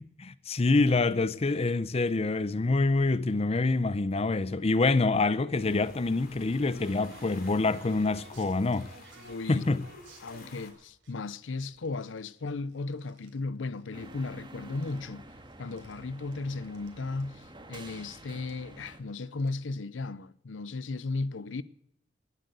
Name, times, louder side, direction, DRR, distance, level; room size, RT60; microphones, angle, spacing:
voice 1, 0.0-8.9 9.5-9.8, left 3 dB, 35° left, 0.6 m, -26 dB
sound 1, 5.5-10.7, left 3 dB, 55° left, 3.2 m, -53 dB
sound 2, 6.4-11.1 11.6-13.4 13.6-14.4 14.6-16.0 16.3-16.4 16.6-16.9 17.2-17.3 18.1-18.2 18.5-18.7 19.3-19.6, right 2 dB, 75° right, 3.6 m, -53 dB
voice 2, 9.2-9.6 10.2-15.3 15.6-21.6, left 3 dB, 80° left, 0.6 m, -35 dB
sound 3, 13.9-19.0, right 1 dB, 25° right, 1.9 m, -49 dB
18.5 x 8.0 x 8.0 m
head